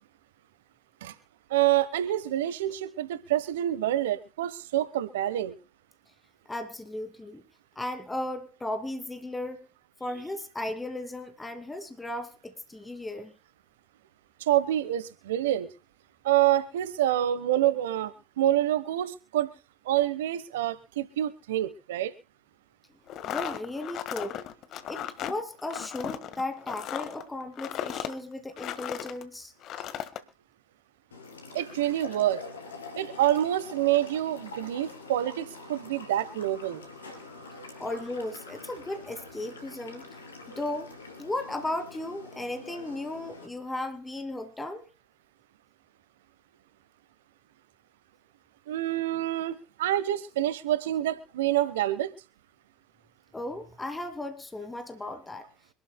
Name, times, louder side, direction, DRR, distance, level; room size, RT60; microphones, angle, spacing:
voice 1, 1.5-5.5 14.5-15.7 16.2-19.5 19.9-22.1 31.5-32.4 33.0-36.8 48.7-52.1, right 13 dB, 80° right, 16 dB, 1.1 m, -27 dB
voice 2, 6.5-7.4 7.8-9.7 10.0-13.3 23.2-24.4 24.9-29.5 37.8-40.0 40.5-40.9 41.2-44.9 53.3-55.5, left 1 dB, 15° left, 9 dB, 2.6 m, -35 dB
sound 1, 23.1-29.2 29.6-30.2, left 10 dB, 55° left, 1.6 m, -36 dB
sound 2, 31.1-43.5, left 3 dB, 90° left, 3.1 m, -45 dB
26.0 x 12.5 x 2.3 m, 0.30 s
hypercardioid pair, 65°, 0 cm